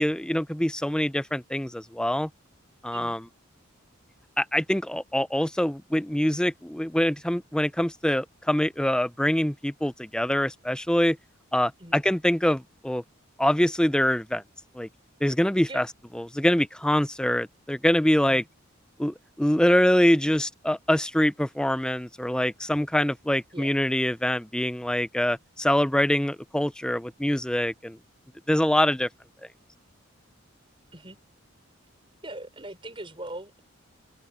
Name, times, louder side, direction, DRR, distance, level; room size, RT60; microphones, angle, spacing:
voice 1, 0.0-2.3 2.8-3.2 4.4-11.2 11.5-13.0 13.4-14.4 14.7-14.9 15.2-15.9 16.1-18.4 19.0-28.0 28.5-29.1, equal, 5° left, 0.5 m, -24 dB
voice 2, 32.2-33.6, right 1 dB, 25° right, 6.0 m, -40 dB
open air
head